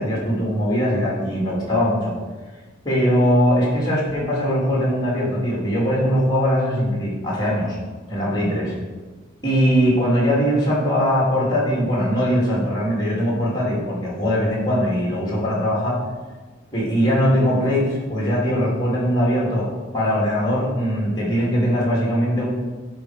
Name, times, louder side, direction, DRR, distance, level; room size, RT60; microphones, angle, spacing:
voice 1, 0.0-2.1 2.8-7.8 8.1-8.7 9.4-16.0 16.7-22.5, equal, 20° left, -5 dB, 2.8 m, -21 dB
11.0 x 4.8 x 5.0 m, 1.3 s
head